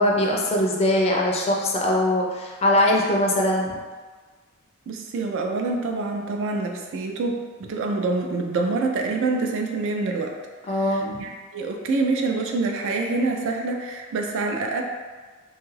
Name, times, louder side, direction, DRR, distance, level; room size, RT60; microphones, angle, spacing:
voice 1, 0.0-3.8 10.7-11.3, left 1 dB, 30° left, -1 dB, 0.4 m, -21 dB
voice 2, 4.9-10.3 10.8-14.8, right 3 dB, 60° right, 2 dB, 0.3 m, -26 dB
2.6 x 2.3 x 3.1 m, 1.4 s
head